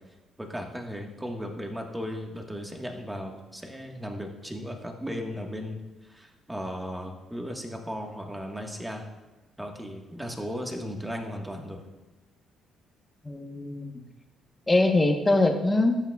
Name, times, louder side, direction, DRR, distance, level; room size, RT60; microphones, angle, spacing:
voice 1, 0.4-9.0 9.6-11.8, equal, 10° right, 2 dB, 1.5 m, -36 dB
voice 2, 13.2-14.0 14.7-16.0, left 2 dB, 20° left, 5 dB, 1.1 m, -23 dB
13.5 x 8.9 x 2.4 m, 1.1 s
cardioid pair, 90°, 0 cm